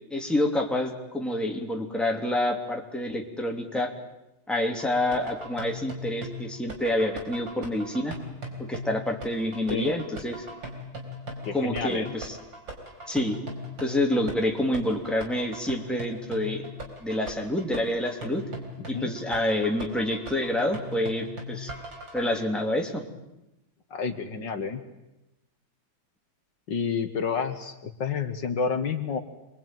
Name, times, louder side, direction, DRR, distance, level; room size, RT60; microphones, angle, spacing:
voice 1, 0.1-3.9 4.5-8.1 8.6-10.4 11.5-12.3 13.1-13.4 13.8-16.7 17.0-18.4 18.9-21.7 22.1-23.0, left 1 dB, ahead, 1 dB, 2.8 m, -27 dB
sound 1, 4.8-22.4, equal, 65° right, 5.2 m, -39 dB
voice 2, 11.4-12.1 18.9-19.1 23.9-24.8 26.7-29.2, left 5 dB, 65° left, 7 dB, 2.1 m, -29 dB
26.5 x 22.5 x 9.1 m, 0.93 s
omnidirectional pair, 2.2 m